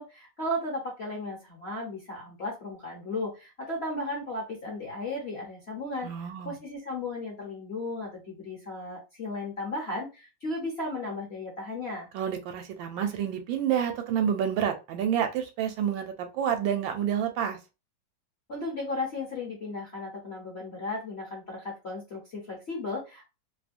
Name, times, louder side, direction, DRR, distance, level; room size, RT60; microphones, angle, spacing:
voice 1, 0.0-6.1 6.4-12.1 18.5-23.3, left 2 dB, 50° left, -3 dB, 0.8 m, -35 dB
voice 2, 6.0-6.6 12.1-17.6, right 9 dB, 80° right, 6 dB, 1.3 m, -29 dB
3.2 x 2.1 x 2.5 m, 0.27 s
omnidirectional pair, 2.2 m